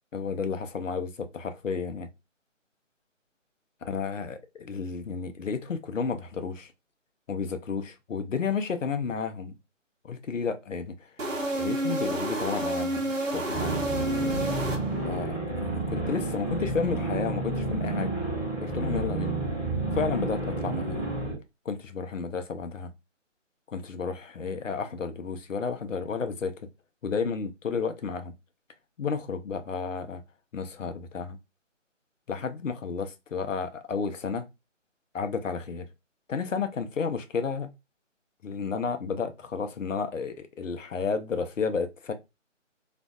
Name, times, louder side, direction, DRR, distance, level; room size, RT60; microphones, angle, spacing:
voice 1, 0.1-2.1 3.8-6.7 7.3-9.6 10.0-10.9 11.6-13.8 15.0-18.1 18.6-19.3 19.9-21.1 21.7-22.9 23.7-26.5 27.0-28.3 29.0-30.2 30.5-31.4 32.3-34.4 35.1-35.8 36.3-37.7 38.4-42.1, left 5 dB, 75° left, 0.6 m, -32 dB
sound 1, 11.2-15.3, right 1 dB, 75° right, 0.9 m, -30 dB
sound 2, 13.5-21.3, right 2 dB, ahead, 0.8 m, -30 dB
2.5 x 2.2 x 2.3 m
figure-of-eight pair, 150°, 38 cm